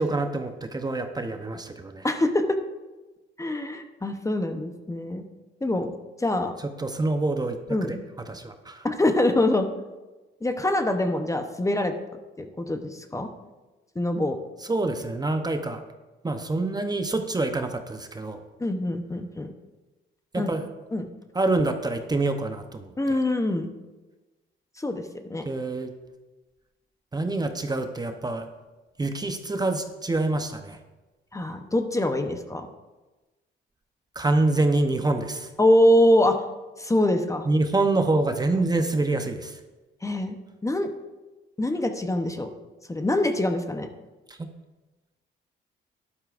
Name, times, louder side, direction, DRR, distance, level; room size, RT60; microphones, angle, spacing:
voice 1, 0.0-2.1 6.6-8.0 8.3-8.9 14.7-15.8 16.2-18.4 20.3-20.7 21.3-23.2 25.4-25.9 27.1-28.5 29.0-30.8 34.1-35.5 37.5-39.6 44.3-44.5, right 2 dB, 20° right, 6 dB, 0.8 m, -26 dB
voice 2, 2.0-2.6 3.4-5.3 5.6-5.9 6.2-6.5 7.7-8.0 8.8-9.7 10.4-11.9 12.4-13.3 14.0-14.4 18.6-19.5 20.4-20.5 20.9-21.1 23.0-23.7 24.8-25.0 25.3-25.5 31.3-32.7 35.6-36.4 36.8-37.5 40.0-40.4 40.6-40.9 41.6-42.5 42.9-43.9, left 1 dB, 15° left, 6 dB, 0.8 m, -24 dB
11.5 x 11.0 x 2.5 m, 1.2 s
cardioid pair, 90°, 20 cm